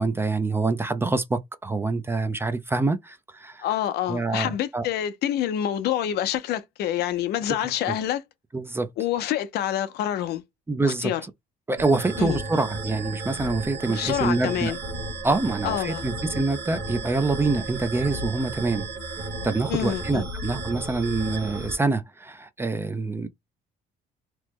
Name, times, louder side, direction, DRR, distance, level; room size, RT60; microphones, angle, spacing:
voice 1, 0.0-3.6 4.1-4.9 7.9-8.0 8.5-8.9 10.7-11.1 11.7-14.7 15.2-18.9 19.4-23.3, right 3 dB, 15° right, 0.4 m, -26 dB
voice 2, 3.6-8.2 9.0-10.4 11.0-11.2 12.2-12.4 13.9-14.8 15.6-16.0 19.7-20.2, left 11 dB, 70° left, 0.6 m, -27 dB
sound 1, 11.8-21.8, right 2 dB, 75° right, 1.4 m, -33 dB
3.0 x 2.1 x 3.4 m
cardioid pair, 110°, 17 cm